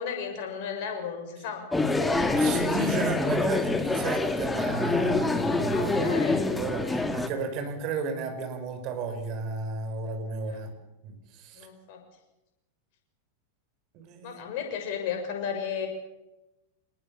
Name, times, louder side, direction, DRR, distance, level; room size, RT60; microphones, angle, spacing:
voice 1, 0.0-1.9 5.4-6.4 10.5-10.6 11.5-12.0 14.2-15.9, left 7 dB, 50° left, 4 dB, 6.7 m, -34 dB
sound 1, 1.7-7.3, left 3 dB, 10° left, 2.2 m, -26 dB
voice 2, 2.0-10.7 11.0-11.7 13.9-14.4, right 4 dB, 40° right, 7 dB, 5.4 m, -34 dB
27.0 x 20.0 x 7.2 m, 0.98 s
figure-of-eight pair, 90°, 0 cm